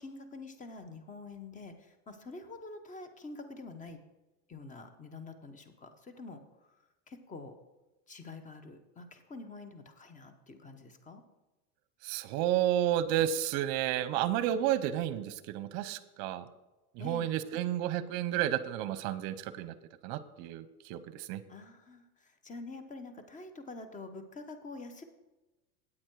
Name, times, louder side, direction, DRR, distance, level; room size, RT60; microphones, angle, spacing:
voice 1, 0.0-4.0 4.5-6.8 7.1-7.6 8.1-11.2 17.0-17.3 21.5-25.0, left 3 dB, 15° left, 9 dB, 0.9 m, -47 dB
voice 2, 12.0-16.4 17.0-19.7 20.0-21.4, right 11 dB, 50° right, 15 dB, 0.8 m, -31 dB
8.8 x 8.7 x 4.7 m, 1.1 s
supercardioid pair, 120°, 48 cm